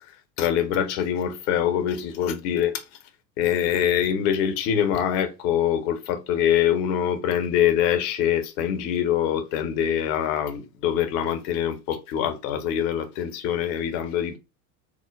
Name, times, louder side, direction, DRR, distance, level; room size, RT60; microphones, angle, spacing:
voice 1, 0.4-2.8 3.4-14.4, left 9 dB, 55° left, 0.9 m, -24 dB
4.9 x 2.1 x 3.5 m
figure-of-eight pair, 80°, 47 cm